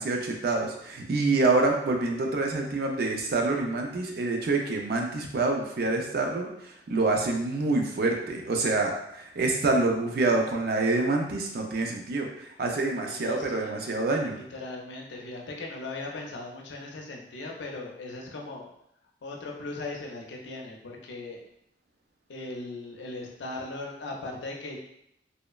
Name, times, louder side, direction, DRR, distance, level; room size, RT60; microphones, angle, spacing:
voice 1, 0.0-14.4, right 3 dB, 55° right, 2 dB, 0.4 m, -27 dB
voice 2, 13.1-13.8 14.3-18.7 19.2-21.4 22.3-24.8, left 2 dB, 75° left, 0 dB, 0.5 m, -38 dB
3.0 x 2.0 x 2.3 m, 0.77 s
head